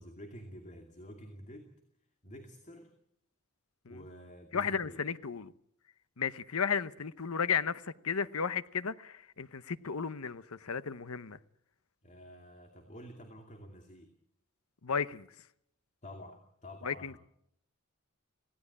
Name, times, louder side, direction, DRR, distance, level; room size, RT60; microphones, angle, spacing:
voice 1, 0.0-1.7 2.2-2.9 3.9-5.0 12.0-14.1 16.0-17.2, equal, 35° left, 2.6 m, -49 dB
voice 2, 4.5-5.5 6.2-11.4 14.8-15.5 16.8-17.2, left 6 dB, 75° left, 0.9 m, -34 dB
27.5 x 17.5 x 8.5 m
head